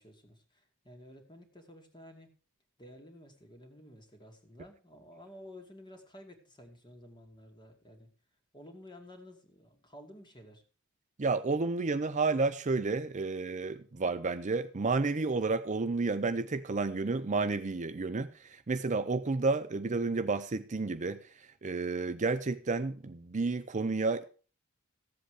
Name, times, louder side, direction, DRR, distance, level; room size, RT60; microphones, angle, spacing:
voice 1, 0.0-2.3 2.8-8.1 8.5-10.6, left 1 dB, 20° left, 2.4 m, -52 dB
voice 2, 11.2-21.2 21.6-24.2, right 3 dB, 35° right, 0.6 m, -31 dB
14.5 x 7.9 x 4.9 m
head